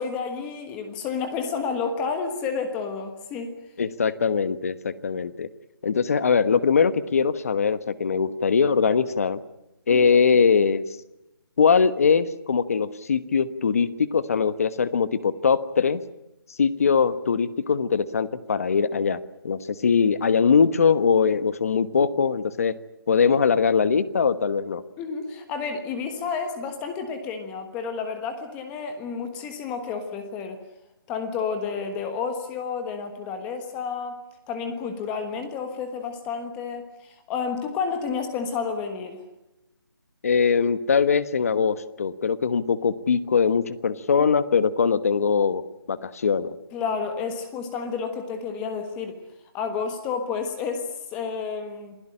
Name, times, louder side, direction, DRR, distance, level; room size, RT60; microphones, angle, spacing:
voice 1, 0.0-3.5 9.9-10.1 25.0-30.6 31.1-34.2 34.5-39.2 44.2-44.3 46.7-49.2 49.5-52.0, left 5 dB, 10° left, 7 dB, 1.4 m, -30 dB
voice 2, 3.8-5.5 5.8-9.4 9.9-10.8 11.6-16.0 16.6-19.2 19.4-22.8 23.1-24.8 40.2-45.6 45.9-46.5, left 6 dB, 40° left, 14 dB, 1.2 m, -21 dB
27.0 x 17.0 x 10.0 m, 0.92 s
hypercardioid pair, 170°, 13 cm